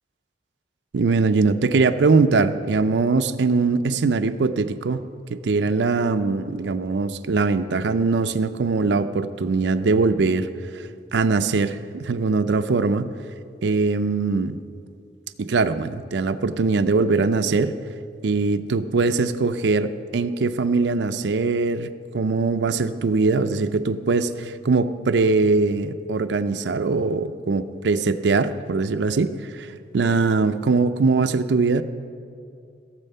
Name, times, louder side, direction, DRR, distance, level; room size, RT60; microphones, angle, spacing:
voice 1, 0.9-5.0 5.3-10.5 11.1-13.1 13.6-14.6 15.4-17.8 18.2-29.7 29.9-31.8, right 4 dB, 85° right, 10 dB, 0.5 m, -21 dB
15.5 x 7.5 x 5.5 m, 2.4 s
head